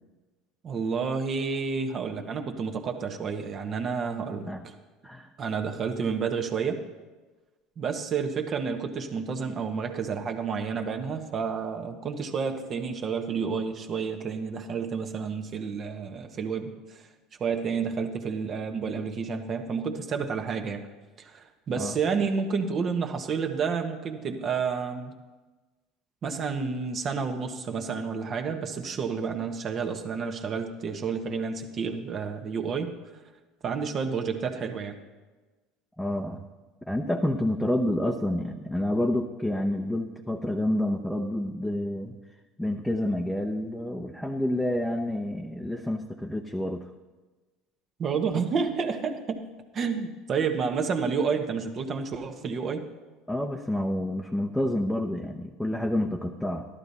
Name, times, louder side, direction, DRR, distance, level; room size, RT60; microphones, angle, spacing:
voice 1, 0.6-4.7 5.4-6.8 7.8-17.0 17.4-20.9 21.2-25.1 26.2-32.9 33.6-35.0 48.0-49.4 49.7-52.8, right 5 dB, 45° right, 5 dB, 1.4 m, -30 dB
voice 2, 36.0-36.4 36.9-42.1 42.6-46.9 53.3-56.7, left 1 dB, 5° left, 2 dB, 0.9 m, -28 dB
13.0 x 12.0 x 4.2 m, 1.2 s
hypercardioid pair, 75°, 0 cm